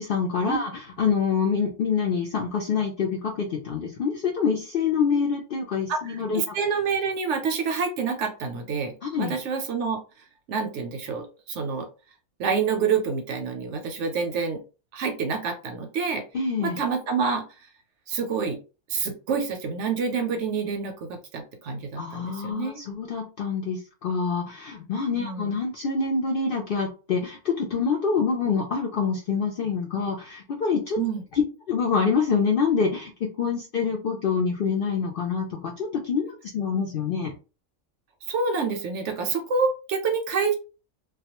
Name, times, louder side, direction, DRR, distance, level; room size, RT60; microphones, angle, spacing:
voice 1, 0.0-6.5 9.0-9.4 16.3-16.8 22.0-31.0 31.3-31.4 31.7-37.3, left 5 dB, 65° left, -1 dB, 0.5 m, -26 dB
voice 2, 5.9-10.0 10.5-11.9 12.4-14.6 14.9-16.2 16.6-17.4 18.1-18.6 18.9-22.8 25.1-25.5 31.0-31.2 38.3-40.5, right 5 dB, 65° right, 4 dB, 0.8 m, -27 dB
2.3 x 2.1 x 2.8 m, 0.33 s
omnidirectional pair, 1.4 m